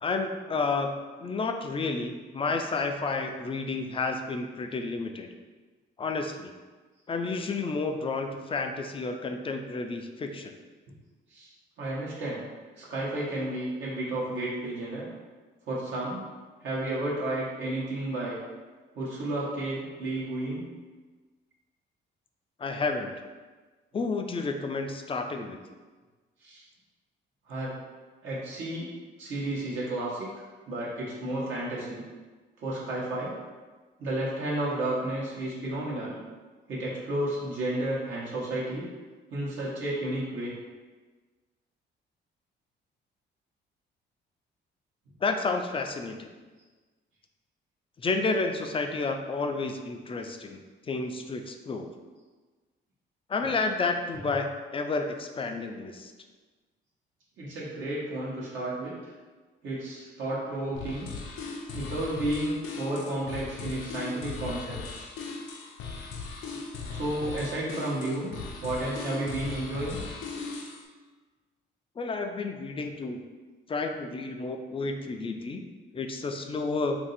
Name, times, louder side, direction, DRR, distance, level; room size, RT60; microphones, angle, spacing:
voice 1, 0.0-5.3 6.0-6.5 7.1-10.6 22.6-23.1 23.9-25.6 45.2-46.3 48.0-50.6 50.8-51.9 53.3-54.5 54.7-56.1 72.0-73.2 73.7-75.6 75.9-77.0, left 3 dB, 25° left, 4 dB, 0.4 m, -31 dB
voice 2, 11.8-12.4 12.8-15.1 15.7-16.3 16.6-18.4 18.9-20.6 26.4-26.6 27.5-27.7 28.2-28.9 29.2-32.0 32.6-33.3 34.0-36.2 36.7-38.8 39.3-40.5 57.4-59.1 59.6-61.1 61.7-65.2 66.9-68.3 68.6-70.0, right 1 dB, 75° right, -6 dB, 1.0 m, -32 dB
sound 1, 60.7-70.8, left 4 dB, 90° left, 0.5 m, -38 dB
2.8 x 2.6 x 4.0 m, 1.3 s
cardioid pair, 90°, 20 cm